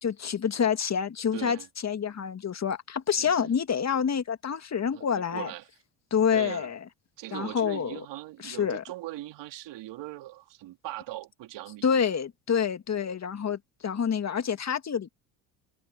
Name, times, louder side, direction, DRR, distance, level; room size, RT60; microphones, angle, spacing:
voice 1, 0.0-1.6 1.8-5.5 6.1-6.8 7.3-8.1 8.4-8.8 11.8-15.1, left 7 dB, 35° left, 2.2 m, -27 dB
voice 2, 1.3-1.7 3.2-3.5 4.9-5.7 6.3-6.7 7.2-11.9, right 16 dB, 65° right, 4.0 m, -40 dB
hypercardioid pair, 70°, 46 cm